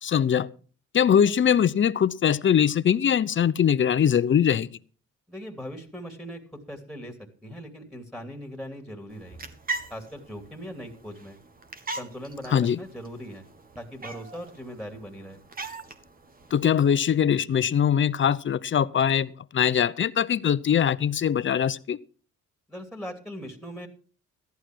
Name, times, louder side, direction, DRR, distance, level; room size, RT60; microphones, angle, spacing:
voice 1, 0.0-0.5 0.9-4.7 12.5-12.8 16.5-22.0, left 8 dB, 40° left, 15 dB, 0.7 m, -22 dB
voice 2, 5.3-6.4 6.7-7.2 7.4-9.5 9.9-11.4 12.0-13.4 13.8-15.4 22.7-23.9, equal, ahead, 3 dB, 2.8 m, -39 dB
sound 1, 9.1-16.9, right 3 dB, 30° right, 1.7 m, -40 dB
14.0 x 11.5 x 4.6 m, 0.39 s
cardioid pair, 90°, 30 cm